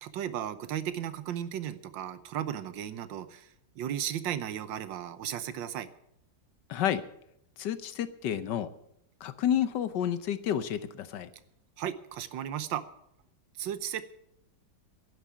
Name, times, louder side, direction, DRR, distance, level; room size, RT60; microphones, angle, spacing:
voice 1, 0.0-5.9 11.8-12.8 13.6-14.1, right 10 dB, 85° right, 13 dB, 1.6 m, -35 dB
voice 2, 6.7-7.1 7.6-8.7 9.2-11.3, left 10 dB, 70° left, 13 dB, 1.4 m, -30 dB
11.0 x 9.4 x 9.5 m, 0.77 s
omnidirectional pair, 2.0 m